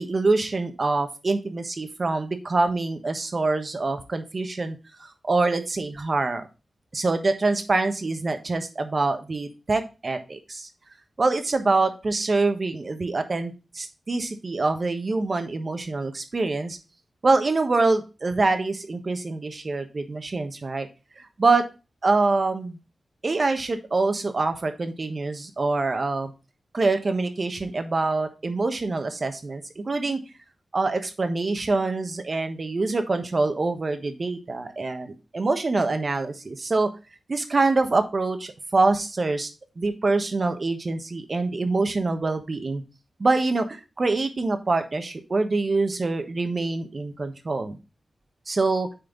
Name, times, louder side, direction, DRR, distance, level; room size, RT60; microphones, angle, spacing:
voice 1, 0.0-6.4 6.9-10.7 11.2-16.8 17.2-20.9 21.2-21.7 22.0-22.8 23.2-26.3 26.7-30.2 30.7-36.9 37.3-39.5 39.8-42.8 43.2-47.8 48.5-48.9, right 3 dB, 45° right, 7 dB, 1.2 m, -25 dB
9.0 x 4.4 x 3.9 m, 0.30 s
wide cardioid pair, 90°, 0 cm